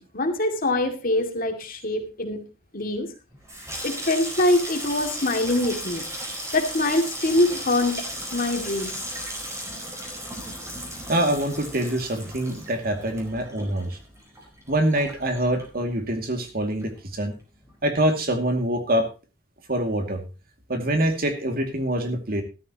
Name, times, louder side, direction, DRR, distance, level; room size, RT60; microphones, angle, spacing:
voice 1, 0.0-2.4 2.7-3.1 3.8-6.0 6.5-8.9, left 2 dB, 45° left, 4 dB, 2.4 m, -24 dB
Water tap faucet / Sink (filling or washing), 3.3-16.2 16.5-17.1 17.4-17.7, equal, 15° right, 4.5 m, -36 dB
voice 2, 11.1-14.0 14.7-17.3 17.8-19.1 19.7-20.2 20.7-22.4, right 1 dB, 50° right, 6 dB, 2.4 m, -25 dB
14.0 x 13.0 x 3.0 m, 0.32 s
head